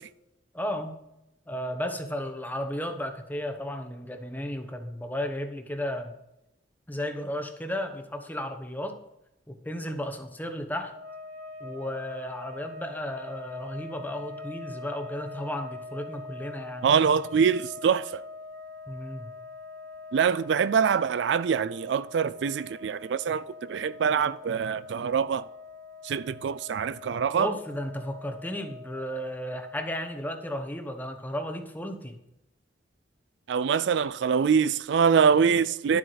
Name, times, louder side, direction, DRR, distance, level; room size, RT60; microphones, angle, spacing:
voice 1, 0.5-0.9 1.5-6.1 6.9-9.0 9.5-10.9 11.6-16.9 18.9-19.3 27.4-32.2, left 1 dB, 10° left, 1.1 m, -34 dB
sound 1, 10.8-30.5, left 3 dB, 55° right, 1.1 m, -44 dB
voice 2, 16.8-18.2 20.1-25.5 26.0-27.5 33.5-36.0, right 6 dB, 70° right, 0.4 m, -24 dB
11.5 x 7.8 x 4.1 m
head